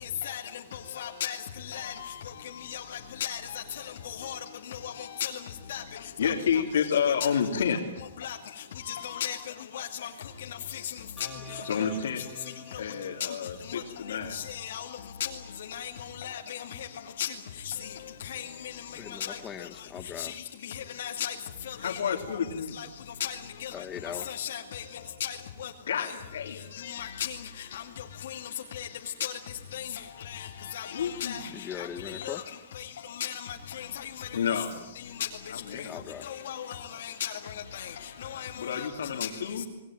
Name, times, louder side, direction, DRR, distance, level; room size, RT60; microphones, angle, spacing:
voice 1, 1.0-1.4 1.7-2.1 2.6-3.4 3.8-4.4 4.7-5.4 5.7-5.8 6.2-6.3 8.2-8.4 8.9-9.4 9.7-10.1 10.5-10.8 11.5-11.6 13.2-13.3 14.3-14.9 15.2-15.3 15.7-15.9 16.2-16.9 17.2-17.3 17.6-17.7 18.2-18.7 19.2-19.4 20.2-20.3 20.7-21.3 21.7-22.0 22.3-22.4 22.8-22.9 23.2-23.7 24.3-24.8 25.2-25.7 26.0-26.1 26.8-27.4 27.7-27.8 28.2-28.4 28.7-28.9 29.2-29.3 29.7-29.9 30.3-31.5 31.8-32.4 32.8-32.9 33.1-34.3 36.2-37.9 38.2-38.9 39.2-39.3, left 10 dB, 65° left, 2.4 m, -36 dB
voice 2, 6.2-8.0 11.6-12.2 12.8-14.4 21.8-22.8 25.8-26.7 30.9-31.4 34.3-34.7 35.5-36.0 38.6-39.7, left 7 dB, 85° left, 3.4 m, -29 dB
sound 1, 11.2-14.5, equal, 5° right, 5.8 m, -49 dB
voice 3, 18.9-20.4 23.7-24.4 31.5-32.4 35.7-36.3, left 8 dB, 15° left, 1.3 m, -40 dB
28.0 x 19.5 x 9.3 m
hypercardioid pair, 170°, 0 cm